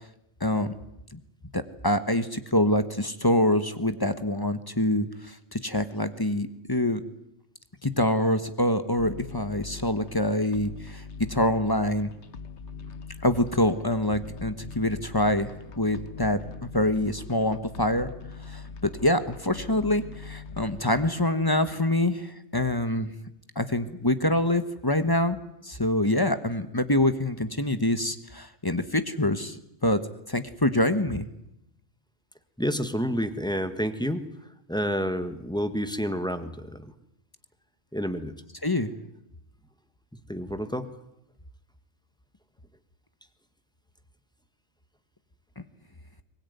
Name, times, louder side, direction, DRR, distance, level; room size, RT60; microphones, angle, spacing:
voice 1, 0.4-0.7 1.5-7.0 7.8-11.0 11.3-12.1 13.2-15.5 15.7-18.1 18.5-18.6 19.0-23.1 23.5-25.4 25.6-29.6 29.8-30.0 30.3-31.3 38.6-38.9, left 1 dB, 20° left, 11 dB, 1.2 m, -25 dB
sound 1, 9.0-20.8, left 5 dB, 65° left, 1.5 m, -42 dB
voice 2, 32.6-34.3 34.7-36.9 37.9-38.4 40.3-40.9, equal, 5° left, 9 dB, 1.5 m, -29 dB
22.5 x 21.0 x 9.4 m, 0.83 s
omnidirectional pair, 1.3 m